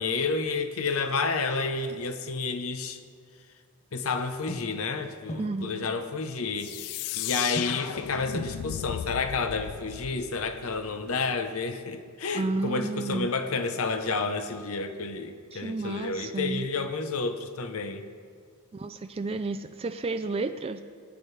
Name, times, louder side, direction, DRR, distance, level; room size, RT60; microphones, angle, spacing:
voice 1, 0.0-3.0 3.9-18.0, left 4 dB, 65° left, 8 dB, 0.8 m, -30 dB
sound 1, 2.9-3.8 4.2-6.2 6.5-6.6 6.9-12.7 13.1-15.7 16.0-16.5, equal, 30° left, 0.7 m, -45 dB
voice 2, 5.4-5.9 12.3-13.3 15.5-16.7 18.7-20.8, right 3 dB, 25° right, 8 dB, 0.3 m, -31 dB
sound 2, 6.6-11.1, left 12 dB, 80° left, 0.3 m, -36 dB
19.0 x 9.2 x 3.3 m, 2.1 s
head